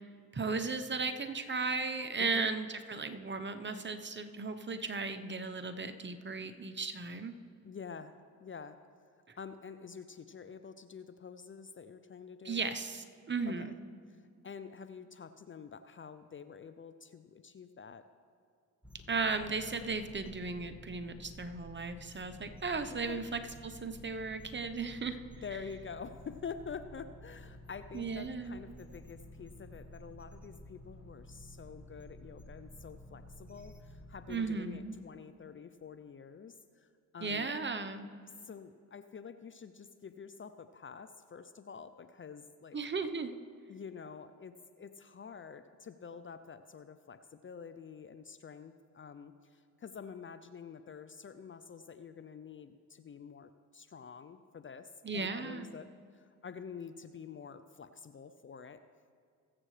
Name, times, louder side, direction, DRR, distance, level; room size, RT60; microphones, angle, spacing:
voice 1, 0.3-7.4 12.4-13.7 19.1-25.2 27.9-28.6 34.3-35.0 37.2-38.1 42.7-43.3 55.0-55.7, right 4 dB, 30° right, 8 dB, 0.9 m, -36 dB
voice 2, 2.2-2.5 7.6-8.1 8.4-8.8 9.4-12.6 13.5-13.7 14.1-18.1 23.1-23.2 25.4-36.9 37.1-37.5 38.4-42.8 43.7-58.8, left 6 dB, 35° left, 11 dB, 0.5 m, -48 dB
sound 1, 18.8-34.4, left 1 dB, 5° right, 1.4 m, -52 dB
21.5 x 7.5 x 3.3 m, 2.2 s
supercardioid pair, 55°, 37 cm